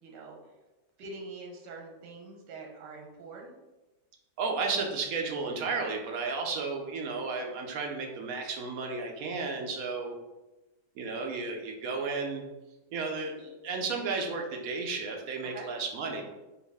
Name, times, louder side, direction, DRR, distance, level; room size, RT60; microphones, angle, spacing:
voice 1, 0.0-0.4 1.0-3.6 15.5-15.7, right 3 dB, 85° right, 1 dB, 1.3 m, -44 dB
voice 2, 4.4-10.2 11.0-12.5 12.9-16.2, right 4 dB, 65° right, 2 dB, 1.0 m, -33 dB
4.6 x 2.5 x 3.4 m, 1.1 s
omnidirectional pair, 1.8 m